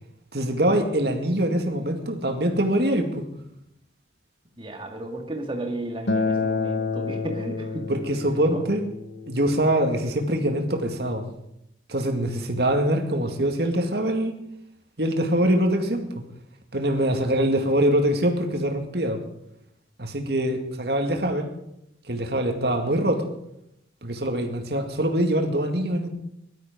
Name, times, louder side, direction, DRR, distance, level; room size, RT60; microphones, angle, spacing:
voice 1, 0.3-3.2 7.9-8.8 9.3-11.3 11.9-14.3 15.0-16.2 16.7-19.2 20.0-21.5 22.1-23.3 24.0-26.1, right 1 dB, 60° right, 4 dB, 2.2 m, -24 dB
voice 2, 4.6-7.9 8.5-8.6, right 1 dB, 25° right, 2 dB, 2.2 m, -33 dB
Acoustic guitar, 6.1-11.3, left 4 dB, 70° left, 1.2 m, -30 dB
18.5 x 12.5 x 5.3 m, 0.79 s
head